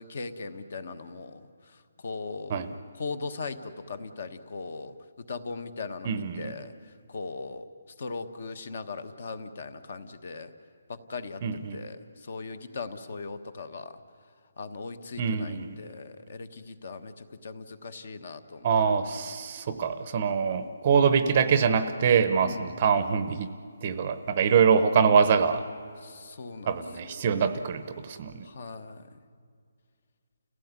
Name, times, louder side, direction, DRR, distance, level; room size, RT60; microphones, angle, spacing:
voice 1, 0.0-2.6 2.9-4.9 5.3-6.7 7.1-7.6 8.0-10.5 10.9-11.4 11.7-14.0 14.6-18.9 22.4-22.8 26.0-26.8 27.1-27.4 28.4-29.0, left 4 dB, 40° left, 12 dB, 1.2 m, -39 dB
voice 2, 6.0-6.5 11.4-11.8 15.2-15.7 18.6-23.5 23.8-25.6 26.7-28.5, right 6 dB, 25° right, 11 dB, 0.8 m, -24 dB
30.0 x 16.5 x 9.6 m, 2.2 s
hypercardioid pair, 180°, 0 cm